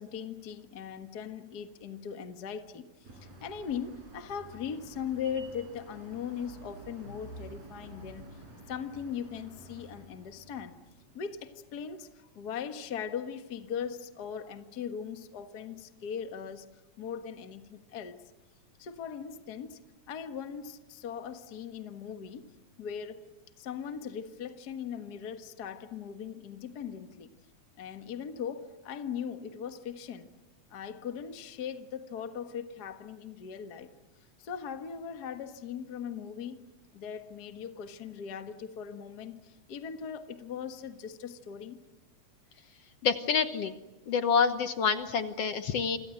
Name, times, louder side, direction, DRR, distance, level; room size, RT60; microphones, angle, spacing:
voice 1, 0.0-2.9 3.4-8.4 8.7-10.8 11.1-16.6 17.0-18.2 18.8-19.8 20.1-22.5 22.8-23.3 23.6-27.3 27.8-30.3 30.7-33.9 34.4-36.6 36.9-41.8, left 7 dB, 40° left, 1.6 m, -39 dB
sound 1, 3.0-11.4, right 2 dB, 60° right, 7.2 m, -50 dB
voice 2, 43.0-43.7 44.1-46.0, left 6 dB, 60° left, 2.1 m, -27 dB
29.0 x 26.0 x 7.8 m
omnidirectional pair, 3.4 m